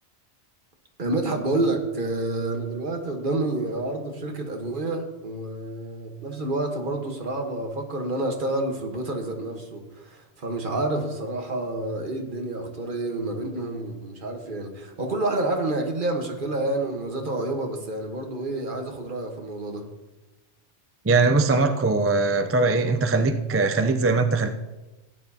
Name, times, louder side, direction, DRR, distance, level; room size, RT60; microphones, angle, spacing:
voice 1, 1.0-19.9, right 2 dB, 50° right, 3 dB, 1.4 m, -29 dB
voice 2, 21.0-24.5, right 3 dB, 25° right, 6 dB, 0.3 m, -21 dB
15.5 x 9.3 x 2.8 m, 1.0 s
omnidirectional pair, 1.1 m